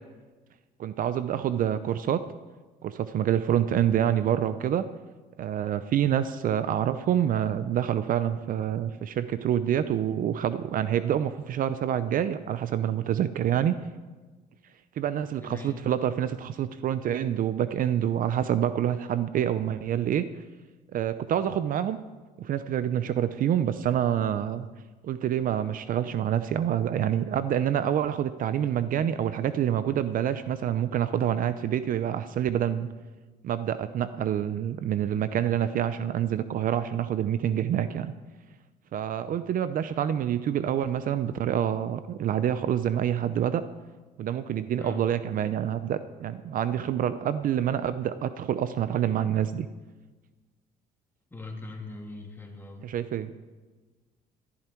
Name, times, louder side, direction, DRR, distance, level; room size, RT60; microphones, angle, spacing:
voice 1, 0.8-2.2 2.8-4.8 5.4-13.8 15.0-20.2 20.9-22.0 22.4-24.7 25.0-32.9 33.4-38.1 38.9-43.6 44.2-49.7 52.8-53.3, right 10 dB, 55° right, 13 dB, 0.6 m, -27 dB
voice 2, 15.4-15.9 44.8-45.0 51.3-52.9, left 2 dB, 15° left, 1 dB, 2.8 m, -40 dB
19.0 x 11.0 x 4.5 m, 1.3 s
cardioid pair, 110°, 17 cm